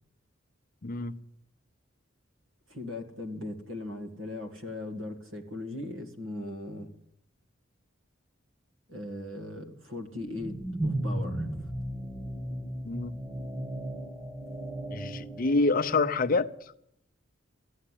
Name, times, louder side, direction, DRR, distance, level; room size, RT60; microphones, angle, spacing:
voice 1, 0.8-1.2 12.8-13.2 14.9-16.7, left 3 dB, 45° left, 0.7 m, -27 dB
voice 2, 2.7-6.9 8.9-11.7, left 2 dB, 75° right, 2.2 m, -39 dB
sound 1, 10.1-16.4, right 1 dB, 20° right, 1.7 m, -35 dB
14.5 x 9.5 x 10.0 m
head